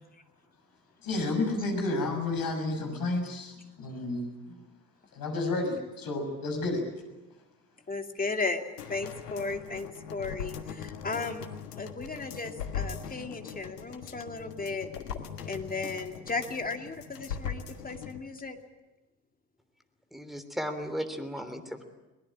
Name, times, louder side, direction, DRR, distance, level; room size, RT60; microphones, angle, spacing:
voice 1, 1.0-4.6 5.1-6.9, left 2 dB, 45° left, 4 dB, 6.7 m, -31 dB
voice 2, 7.9-11.5 11.8-14.9 15.5-18.6, left 3 dB, 15° left, 5 dB, 2.5 m, -35 dB
sound 1, 8.8-18.2 18.6-18.7, left 7 dB, 75° left, 1.6 m, -40 dB
voice 3, 20.1-21.8, equal, ahead, 8 dB, 3.1 m, -35 dB
23.0 x 20.0 x 8.7 m, 1.1 s
figure-of-eight pair, 55°, 48 cm